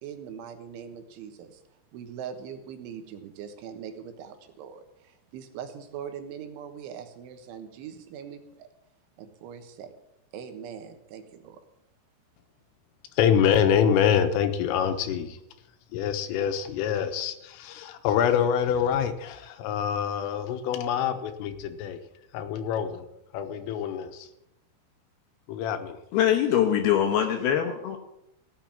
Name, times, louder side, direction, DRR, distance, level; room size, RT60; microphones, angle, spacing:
voice 1, 0.0-8.7 9.2-9.9 10.3-11.6, right 8 dB, 75° right, 7 dB, 3.5 m, -41 dB
voice 2, 13.2-15.4 15.9-22.0 22.3-23.1 23.3-24.3 25.5-26.0, left 8 dB, 90° left, 8 dB, 3.7 m, -25 dB
voice 3, 26.1-28.0, left 10 dB, 70° left, 4 dB, 2.5 m, -23 dB
17.0 x 7.3 x 9.1 m, 0.85 s
omnidirectional pair, 5.8 m